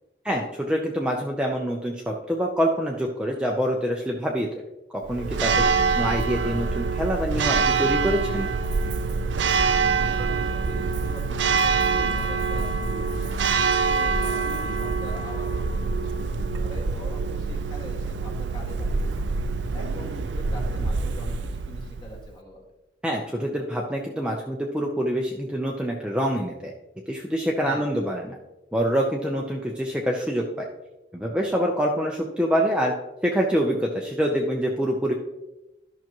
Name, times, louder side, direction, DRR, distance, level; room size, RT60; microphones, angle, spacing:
voice 1, 0.2-4.5 5.1-5.6 6.0-8.5 23.0-26.7 27.1-28.4 28.7-30.4 31.1-32.9 33.2-35.1, equal, 5° right, -1 dB, 0.6 m, -25 dB
Church bell, 5.0-22.3, right 4 dB, 90° right, 0.6 m, -25 dB
voice 2, 10.0-13.4 13.9-19.1 19.7-22.7 27.6-28.0, equal, 25° left, -1 dB, 1.8 m, -42 dB
13.0 x 5.9 x 3.0 m, 0.99 s
head